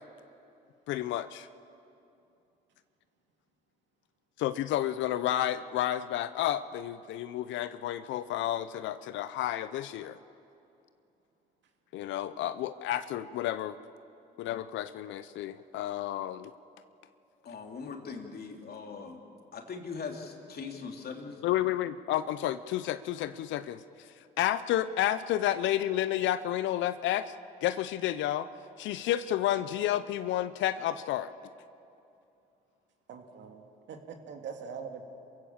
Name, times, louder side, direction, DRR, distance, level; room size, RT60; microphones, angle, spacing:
voice 1, 0.9-1.5 4.4-10.2 11.9-13.8 14.4-16.5 21.4-23.8 24.4-27.3 27.6-28.5 28.8-31.3, left 12 dB, 70° left, 13 dB, 0.7 m, -31 dB
voice 2, 17.4-19.2 19.5-21.4, left 5 dB, 50° left, 2 dB, 3.1 m, -40 dB
voice 3, 33.1-33.6 33.9-35.0, right 6 dB, 65° right, 4 dB, 2.4 m, -42 dB
27.5 x 16.0 x 7.4 m, 2.7 s
hypercardioid pair, 60°, 20 cm